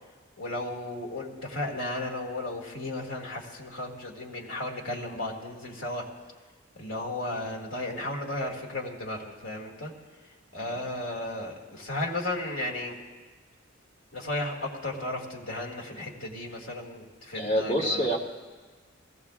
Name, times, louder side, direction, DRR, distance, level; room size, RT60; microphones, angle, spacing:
voice 1, 0.4-6.1 6.8-9.9 10.5-13.0 14.1-18.2, left 1 dB, 80° left, 1 dB, 2.2 m, -34 dB
voice 2, 17.3-18.2, equal, 55° left, -1 dB, 2.3 m, -27 dB
21.5 x 16.5 x 2.5 m, 1.4 s
head